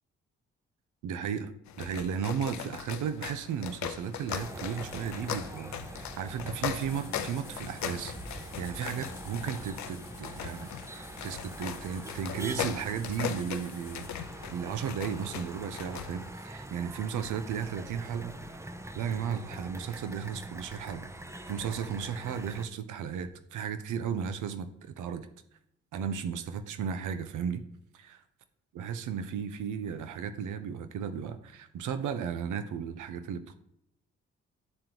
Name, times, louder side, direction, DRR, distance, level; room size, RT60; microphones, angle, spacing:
voice 1, 1.0-1.5 1.8-14.1 14.5-21.1 21.5-25.3 25.9-27.6 28.0-28.2 28.7-33.5, right 7 dB, 70° right, 10 dB, 0.7 m, -35 dB
sound 1, 1.7-16.3, left 10 dB, 60° left, 0.5 m, -40 dB
sound 2, 4.3-22.7, right 1 dB, 10° right, 0.6 m, -44 dB
sound 3, 6.8-14.1, left 6 dB, 45° left, 0.9 m, -52 dB
9.7 x 3.7 x 2.9 m, 0.77 s
supercardioid pair, 50°, 32 cm